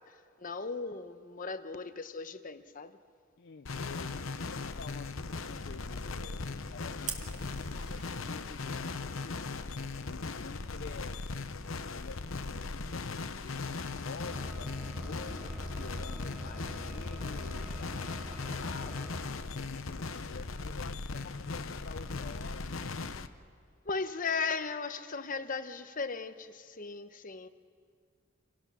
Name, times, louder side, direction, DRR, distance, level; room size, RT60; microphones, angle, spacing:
voice 1, 0.0-3.0 23.8-27.5, left 4 dB, 40° left, 1.0 m, -37 dB
voice 2, 3.4-9.6 10.0-11.2 11.8-13.1 13.4-19.1 19.5-22.9, left 5 dB, 55° left, 0.5 m, -49 dB
sound 1, 3.7-23.3, left 3 dB, 75° left, 0.9 m, -38 dB
Fire, 7.1-8.2, right 6 dB, 35° right, 2.2 m, -42 dB
sound 2, 14.2-19.2, equal, 5° left, 1.2 m, -44 dB
28.5 x 18.0 x 6.2 m
head